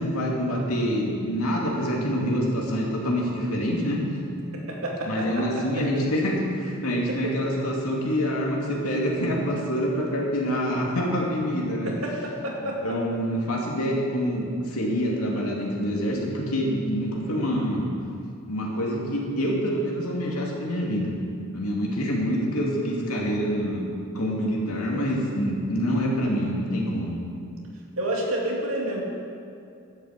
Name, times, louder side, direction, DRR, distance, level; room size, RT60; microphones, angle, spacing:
voice 1, 0.0-4.0 5.0-11.9 12.8-17.9 18.5-21.1 21.5-23.9 24.1-27.2, equal, 85° left, -2 dB, 2.6 m, -26 dB
voice 2, 4.5-6.0 7.1-7.4 11.8-13.0 24.7-25.1 28.0-29.0, right 1 dB, 75° right, -1 dB, 2.4 m, -30 dB
11.5 x 8.4 x 7.6 m, 2.6 s
head